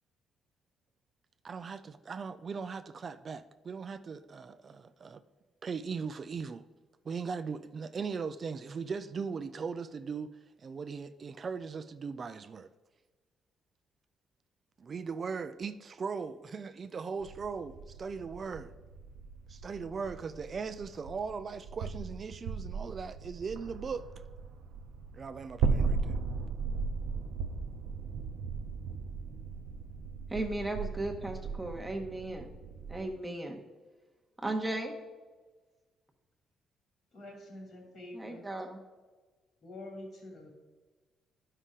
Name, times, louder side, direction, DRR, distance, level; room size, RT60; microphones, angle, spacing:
voice 1, 1.4-5.2 5.6-6.6 7.0-10.3 10.6-12.7 14.8-18.7 19.5-24.0 25.1-26.1, right 5 dB, 45° right, 0.4 m, -39 dB
sound 1, 17.2-33.1, right 5 dB, 80° right, 0.7 m, -37 dB
voice 2, 30.3-32.5 32.9-33.6 34.4-34.9 38.1-38.8, right 2 dB, 10° right, 1.1 m, -36 dB
voice 3, 37.1-38.5 39.6-40.5, left 1 dB, 55° left, 3.0 m, -46 dB
11.0 x 5.5 x 3.7 m
cardioid pair, 90°, 0 cm